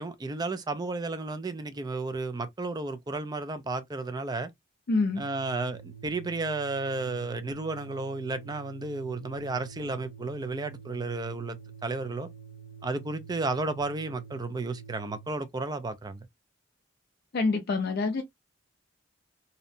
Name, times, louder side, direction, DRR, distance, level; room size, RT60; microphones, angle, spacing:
voice 1, 0.0-4.5 5.2-12.3 12.8-16.3, right 3 dB, 20° right, 0.4 m, -33 dB
voice 2, 4.9-5.2 17.3-18.2, left 3 dB, 55° left, 0.4 m, -26 dB
Organ, 5.1-15.4, right 6 dB, 70° right, 0.6 m, -47 dB
2.7 x 2.1 x 2.4 m
head